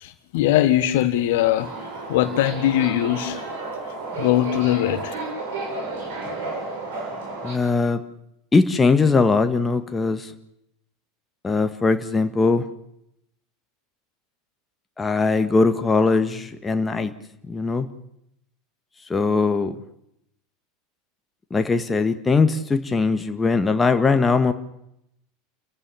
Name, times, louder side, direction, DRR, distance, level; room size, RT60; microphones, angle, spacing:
voice 1, 0.0-1.7 2.1-3.4 4.2-5.2, left 13 dB, 55° left, 11 dB, 1.5 m, -21 dB
Subway metro underground, 1.6-7.5, right 2 dB, 60° right, 7.4 m, -32 dB
voice 2, 7.4-8.0 8.5-10.3 11.4-12.6 15.0-17.1 17.5-17.9 19.1-19.8 21.5-24.5, left 4 dB, 15° left, 8 dB, 1.8 m, -20 dB
30.0 x 15.5 x 7.3 m, 0.78 s
figure-of-eight pair, 80°, 0 cm